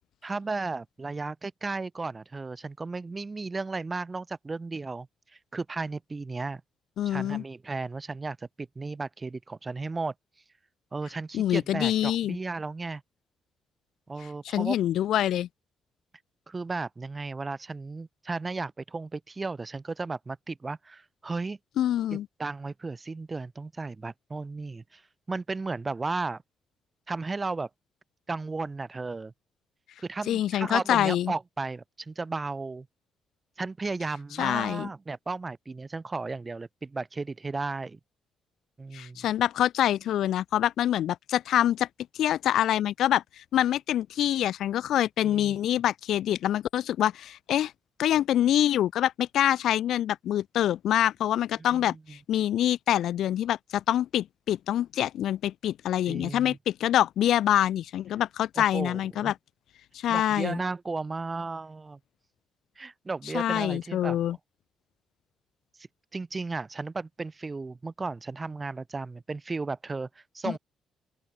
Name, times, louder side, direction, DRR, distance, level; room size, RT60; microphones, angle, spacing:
voice 1, 0.2-5.1 5.5-6.6 7.1-10.1 10.9-13.0 14.1-14.8 16.5-21.6 22.1-25.0 25.3-26.4 27.1-27.7 28.3-29.3 30.0-32.9 33.6-38.0 38.8-39.3 45.2-45.6 51.6-52.2 56.1-56.6 58.6-59.3 60.1-62.0 62.8-64.2 65.8-70.6, right 3 dB, 25° right, 5.4 m, -34 dB
voice 2, 7.0-7.4 11.3-12.4 14.4-15.5 21.8-22.3 30.3-31.3 34.4-34.9 38.9-41.9 42.2-47.7 48.0-59.3 59.9-60.6 63.3-64.4 70.5-70.6, left 11 dB, 75° left, 2.2 m, -25 dB
open air
cardioid pair, 90°, 0 cm